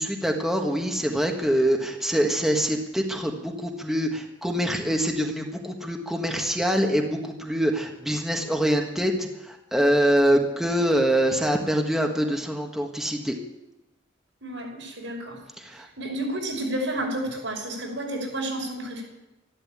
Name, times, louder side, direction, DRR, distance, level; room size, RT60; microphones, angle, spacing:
voice 1, 0.0-13.4 15.6-15.9, equal, ahead, 2 dB, 1.5 m, -24 dB
voice 2, 14.4-19.0, right 1 dB, 85° right, 1 dB, 5.4 m, -31 dB
13.5 x 12.0 x 8.6 m, 0.96 s
head